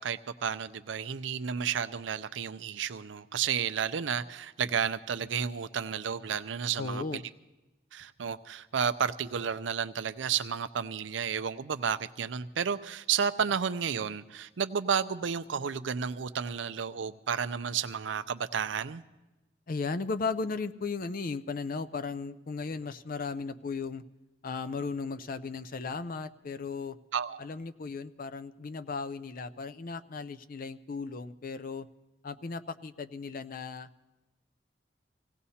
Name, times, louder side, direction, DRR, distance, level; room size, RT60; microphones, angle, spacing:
voice 1, 0.0-7.2 7.9-19.0 27.1-27.4, right 7 dB, 85° right, 13 dB, 0.5 m, -32 dB
voice 2, 6.8-7.2 19.7-24.0 24.4-27.0 27.4-31.9 32.2-33.9, left 4 dB, 50° left, 13 dB, 0.5 m, -36 dB
25.5 x 17.0 x 2.8 m, 1.1 s
head